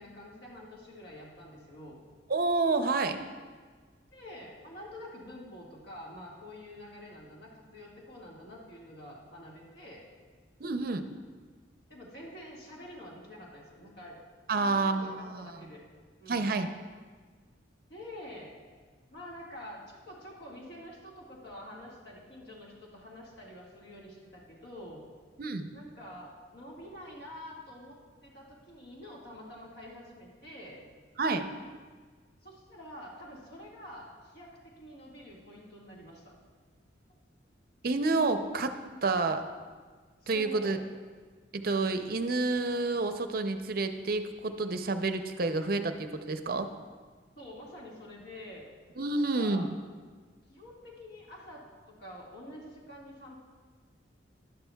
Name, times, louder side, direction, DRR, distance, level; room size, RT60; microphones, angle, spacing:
voice 1, 0.0-2.0 4.1-10.0 11.9-14.2 14.5-15.8 16.2-16.5 17.9-18.5 19.1-25.0 25.7-28.0 28.2-30.8 32.4-36.3 40.2-40.8 47.3-48.6 49.1-49.7 50.5-53.4, left 1 dB, 60° left, -3 dB, 1.8 m, -47 dB
voice 2, 2.3-3.2 10.6-11.0 14.5-15.5 16.3-16.7 25.4-25.7 31.2-31.4 37.8-38.7 39.0-39.4 40.3-40.8 41.5-46.7 49.0-49.7, right 3 dB, 50° right, 8 dB, 0.5 m, -29 dB
11.5 x 11.5 x 2.3 m, 1.5 s
head